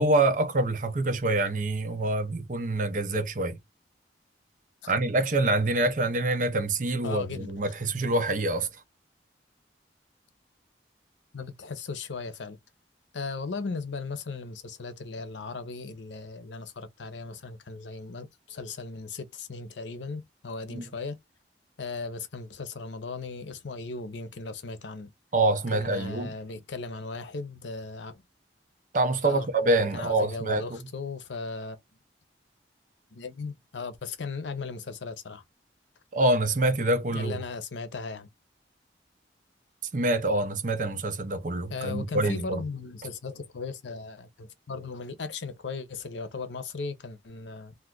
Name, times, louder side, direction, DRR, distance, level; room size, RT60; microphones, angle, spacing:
voice 1, 0.0-3.6 4.9-8.7 20.7-20.9 25.3-26.3 28.9-30.8 36.1-37.4 39.9-42.6, right 2 dB, 45° right, 0.6 m, -26 dB
voice 2, 7.0-7.5 11.3-12.6 13.1-21.2 21.8-25.1 25.7-28.2 29.2-29.5 29.9-31.8 33.1-35.4 37.1-38.3 41.7-47.8, left 4 dB, 90° left, 0.6 m, -37 dB
2.5 x 2.4 x 3.6 m
head